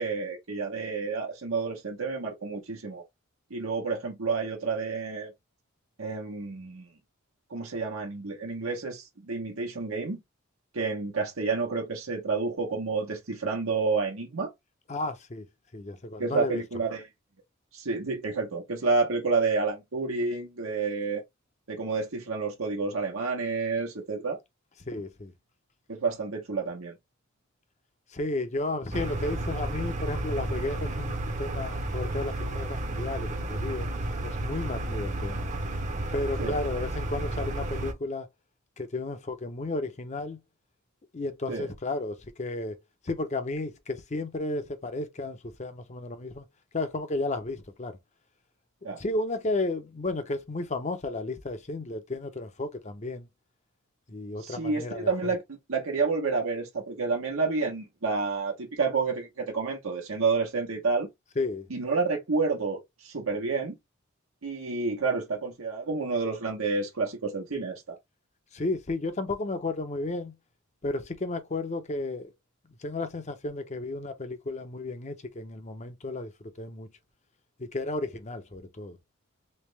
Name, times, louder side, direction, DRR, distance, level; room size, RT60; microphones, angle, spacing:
voice 1, 0.0-3.0 3.5-5.3 6.0-6.9 7.5-10.2 10.7-14.5 16.2-17.0 17.7-21.2 21.7-24.4 25.9-26.9 36.4-36.6 41.5-41.7 48.8-49.0 54.4-61.1 61.7-63.8 64.4-68.0, right 4 dB, 90° right, 1.1 m, -29 dB
voice 2, 14.9-15.5 15.7-16.6 24.9-25.3 28.1-33.9 34.2-35.5 36.1-38.3 38.8-40.4 41.1-42.8 43.0-46.5 46.7-48.0 49.0-53.3 54.1-55.4 61.4-61.7 68.5-70.3 70.8-72.3 72.8-76.9 77.6-79.0, left 2 dB, 35° left, 0.7 m, -33 dB
sound 1, 28.9-37.9, right 1 dB, 35° right, 0.7 m, -32 dB
3.3 x 3.2 x 3.3 m
head